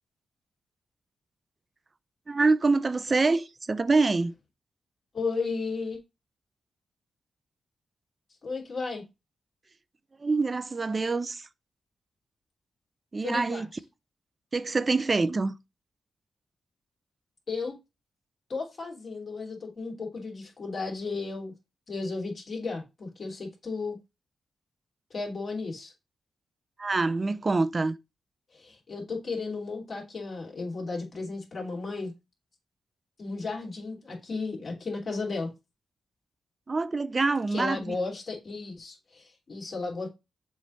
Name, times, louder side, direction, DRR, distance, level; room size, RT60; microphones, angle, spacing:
voice 1, 2.3-4.3 10.2-11.5 13.1-13.7 14.5-15.5 26.8-28.0 36.7-38.0, right 3 dB, 35° right, 0.5 m, -25 dB
voice 2, 5.1-6.0 8.4-9.0 13.2-13.6 17.5-17.8 18.5-21.5 21.9-24.0 25.1-25.9 28.5-32.1 33.2-35.5 37.5-40.1, left 4 dB, 50° left, 2.9 m, -34 dB
7.2 x 3.3 x 4.0 m
cardioid pair, 80°, 0 cm